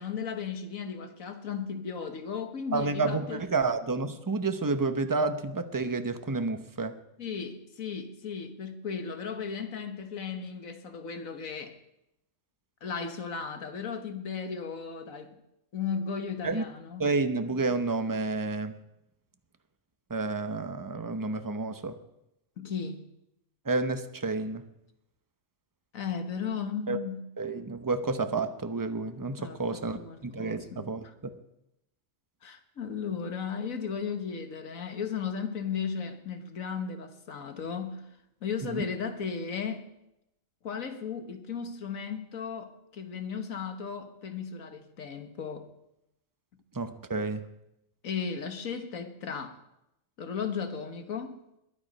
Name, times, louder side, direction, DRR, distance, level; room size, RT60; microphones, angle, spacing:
voice 1, 0.0-3.4 7.2-11.8 12.8-15.4 15.7-17.1 22.6-23.0 25.9-27.3 29.4-30.9 32.4-38.0 38.4-39.9 40.6-45.7 48.0-49.6 50.2-51.4, left 6 dB, 90° left, 7 dB, 1.8 m, -35 dB
voice 2, 2.7-7.0 16.4-16.6 17.0-18.8 20.1-22.0 23.7-24.7 26.9-27.0 27.4-31.4 38.6-38.9 46.7-47.5, right 3 dB, 20° right, 9 dB, 0.7 m, -30 dB
21.0 x 9.6 x 5.4 m, 0.85 s
omnidirectional pair, 1.4 m